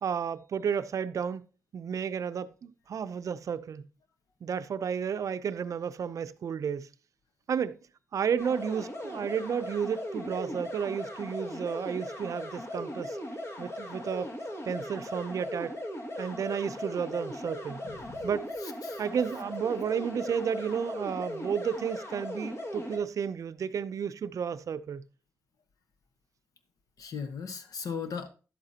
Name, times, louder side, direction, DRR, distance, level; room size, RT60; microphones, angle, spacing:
voice 1, 0.0-1.4 1.7-3.9 4.4-6.9 7.5-7.8 8.1-13.2 13.6-14.3 14.6-15.7 16.2-17.8 18.2-18.5 19.0-25.0, right 7 dB, 60° right, 0.5 m, -32 dB
sound 1, 8.4-23.0, left 1 dB, 50° left, 2.2 m, -38 dB
voice 2, 17.8-18.3 18.6-19.0 27.0-28.3, left 6 dB, 70° left, 1.2 m, -38 dB
10.5 x 7.9 x 2.8 m
cardioid pair, 80°, 6 cm